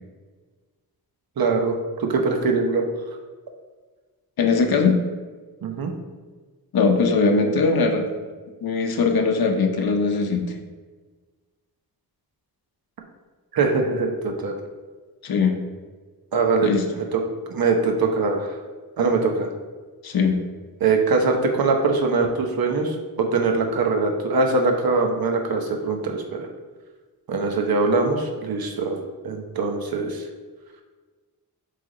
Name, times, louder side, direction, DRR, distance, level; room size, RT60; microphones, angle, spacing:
voice 1, 1.4-2.8 5.6-5.9 13.5-14.5 16.3-16.7 17.0-17.2 17.5-18.5 19.0-19.5 20.8-26.5 27.3-29.0 29.2-30.2, right 4 dB, 70° right, 3 dB, 0.9 m, -22 dB
voice 2, 4.4-5.0 6.7-8.1 8.6-10.4 15.2-15.6 16.6-16.8 20.0-20.4, left 4 dB, 75° left, 4 dB, 0.9 m, -20 dB
7.7 x 3.4 x 3.9 m, 1.4 s
wide cardioid pair, 135°, 37 cm